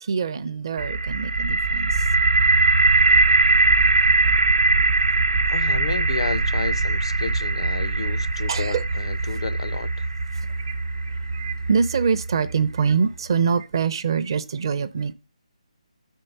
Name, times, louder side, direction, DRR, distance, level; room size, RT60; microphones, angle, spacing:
voice 1, 0.0-2.1 4.8-4.9 8.5-8.8 10.3-10.8 11.0-15.1, right 6 dB, 40° right, 0.5 m, -25 dB
sound 1, 0.8-12.6, right 3 dB, 65° right, 0.8 m, -21 dB
voice 2, 5.5-10.1, left 5 dB, 45° left, 0.5 m, -32 dB
5.7 x 4.5 x 6.4 m
hypercardioid pair, 165°, 4 cm